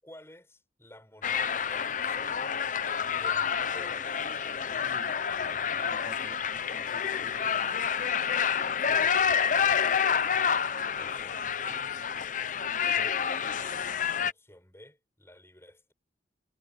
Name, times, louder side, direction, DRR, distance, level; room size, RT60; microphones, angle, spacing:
voice 1, 0.0-2.5 3.1-4.2 5.8-6.5 8.9-11.9 12.8-13.4 14.2-15.9, left 1 dB, 15° left, 7.3 m, -52 dB
sound 1, 1.2-14.3, left 7 dB, 45° left, 0.7 m, -28 dB
voice 2, 4.8-5.3 5.9-7.9, right 1 dB, 25° right, 4.2 m, -52 dB
head